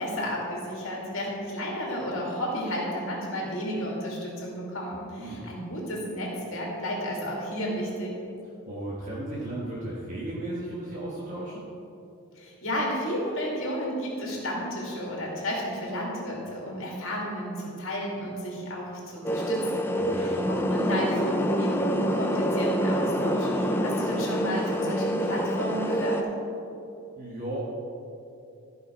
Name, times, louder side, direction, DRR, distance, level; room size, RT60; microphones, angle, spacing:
voice 1, 0.0-8.1 12.4-26.2, equal, 60° left, -3 dB, 2.5 m, -32 dB
voice 2, 8.7-11.7 20.0-20.3 27.2-27.6, right 1 dB, 35° right, -6 dB, 1.3 m, -35 dB
sound 1, 19.2-26.2, equal, 10° left, 0.4 m, -26 dB
14.0 x 5.7 x 4.6 m, 2.7 s
head